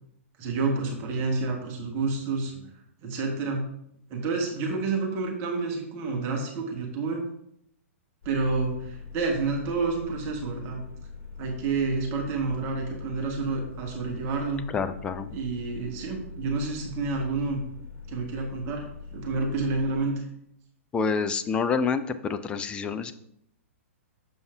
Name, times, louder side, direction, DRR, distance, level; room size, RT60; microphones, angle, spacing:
voice 1, 0.4-2.7 3.0-3.6 4.1-7.2 8.2-10.8 11.4-14.6 15.3-17.6 18.1-20.2, right 3 dB, 30° right, 0 dB, 1.4 m, -29 dB
sound 1, 8.2-19.9, left 5 dB, 35° left, 2.7 m, -43 dB
voice 2, 14.7-15.3 20.9-23.1, left 5 dB, 15° left, 10 dB, 0.4 m, -27 dB
6.9 x 5.3 x 3.4 m, 0.73 s
figure-of-eight pair, 110°, 8 cm